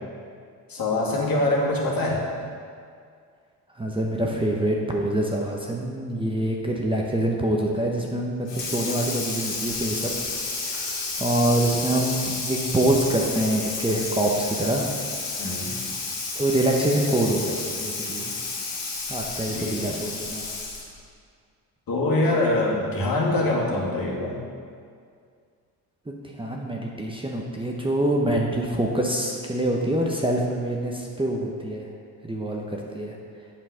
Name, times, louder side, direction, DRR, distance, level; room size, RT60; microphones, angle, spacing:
voice 1, 0.7-2.3 15.4-15.7 19.5-20.0 21.9-24.4, left 2 dB, 50° left, -4 dB, 2.2 m, -24 dB
voice 2, 3.7-10.1 10.6-10.9 11.2-14.9 16.4-18.4 19.1-20.5 26.1-31.9 32.2-33.2, right 1 dB, 10° right, -1 dB, 0.9 m, -25 dB
Water tap faucet / Sink (filling or washing), 8.5-21.0, left 3 dB, 70° left, 1.8 m, -31 dB
7.3 x 5.9 x 5.0 m, 2.2 s
supercardioid pair, 65°, 45 cm